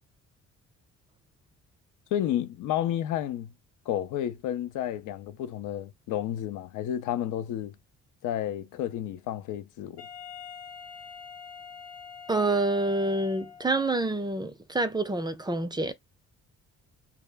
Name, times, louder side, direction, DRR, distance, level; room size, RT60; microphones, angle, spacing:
voice 1, 2.1-3.5 3.9-7.7 8.2-10.0, left 11 dB, 85° left, 0.5 m, -31 dB
Wind instrument woodwind instrument, 10.0-13.9, left 7 dB, 55° left, 0.8 m, -45 dB
voice 2, 12.3-15.9, right 2 dB, 15° right, 0.4 m, -27 dB
2.2 x 2.0 x 3.3 m
cardioid pair, 90°, 30 cm